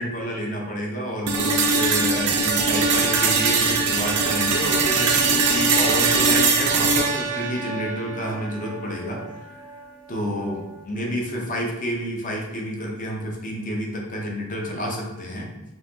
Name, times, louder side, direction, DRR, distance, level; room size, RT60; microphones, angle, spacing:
voice 1, 0.0-9.2 9.5-9.6 10.1-15.5, equal, 35° left, -1 dB, 0.8 m, -29 dB
sound 1, 1.3-9.3, right 4 dB, 90° right, 0.6 m, -21 dB
5.6 x 2.8 x 2.8 m, 1.0 s
head